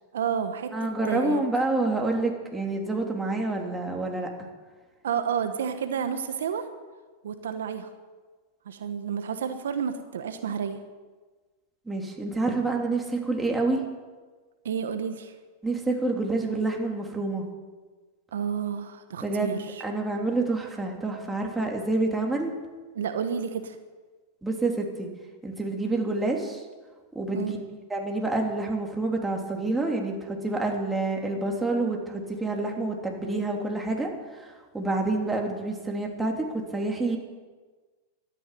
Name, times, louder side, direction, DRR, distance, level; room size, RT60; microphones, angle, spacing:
voice 1, 0.1-1.4 5.0-6.7 7.2-7.9 8.6-10.8 14.6-15.3 18.3-19.8 22.9-23.8 27.3-27.6, right 7 dB, 80° right, 8 dB, 1.2 m, -30 dB
voice 2, 0.7-4.3 11.9-13.8 15.6-17.5 19.2-19.6 19.8-22.5 24.4-25.1 25.4-26.6 27.1-27.6 27.9-34.1 34.4-37.2, right 2 dB, 10° right, 0 dB, 3.3 m, -28 dB
13.5 x 10.0 x 9.4 m, 1.3 s
hypercardioid pair, 105°, 0 cm